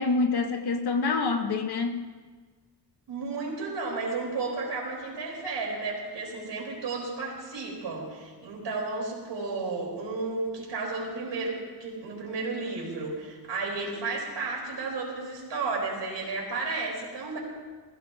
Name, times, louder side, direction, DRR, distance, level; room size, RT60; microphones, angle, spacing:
voice 1, 0.0-2.1, left 4 dB, 65° left, 6 dB, 1.3 m, -26 dB
voice 2, 3.1-17.4, right 3 dB, 85° right, -2 dB, 4.3 m, -33 dB
20.5 x 16.0 x 2.8 m, 1.4 s
wide cardioid pair, 125°, 41 cm